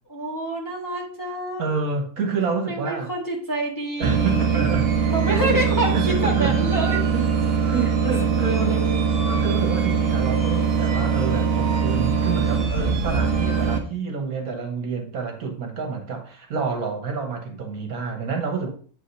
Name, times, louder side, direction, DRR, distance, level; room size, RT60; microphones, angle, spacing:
voice 1, 0.1-1.9 2.7-4.7 5.1-7.0 8.0-8.1 8.5-9.0 12.9-13.4, right 1 dB, 15° left, 1.1 m, -28 dB
voice 2, 1.6-3.1 4.0-4.9 5.3-5.6 5.9-6.7 7.1-7.3 7.7-8.8 9.3-18.7, right 5 dB, 70° right, 1.6 m, -28 dB
sound 1, 4.0-13.8, right 6 dB, 45° right, 1.0 m, -22 dB
7.5 x 4.9 x 2.7 m
omnidirectional pair, 1.6 m